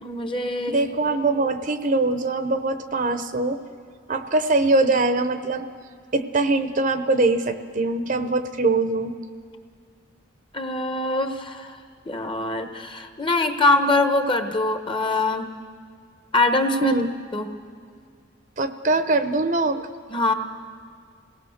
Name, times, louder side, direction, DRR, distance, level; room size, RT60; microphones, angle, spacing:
voice 1, 0.0-0.8 10.5-11.8 12.1-15.5 16.3-17.0 17.3-17.5 20.1-20.3, left 2 dB, 25° left, 7 dB, 1.1 m, -23 dB
voice 2, 0.7-3.6 4.1-5.7 6.1-9.1 16.8-17.1 18.6-19.9, right 2 dB, 40° right, 10 dB, 0.8 m, -22 dB
27.5 x 18.5 x 6.5 m, 2.2 s
head